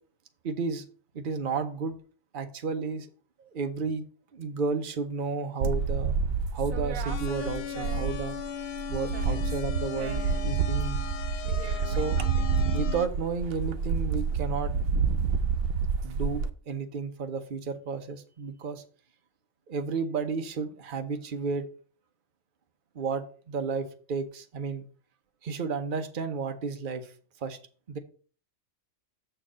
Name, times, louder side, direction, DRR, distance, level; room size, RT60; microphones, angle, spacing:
voice 1, 0.4-0.8 1.1-2.0 2.3-3.1 3.4-4.0 4.3-6.2 6.5-8.4 8.9-11.0 11.8-12.2 12.7-14.7 16.0-18.8 19.7-21.7 22.9-24.9 25.4-27.1 27.4-27.6 27.9-28.0, right 5 dB, 45° right, 7 dB, 1.0 m, -32 dB
sound 1, 5.6-8.5 8.8-16.5, right 5 dB, 85° right, 1.1 m, -28 dB
sound 2, 7.1-13.1, left 9 dB, 60° left, 0.7 m, -37 dB
6.8 x 4.6 x 6.2 m, 0.41 s
omnidirectional pair, 1.4 m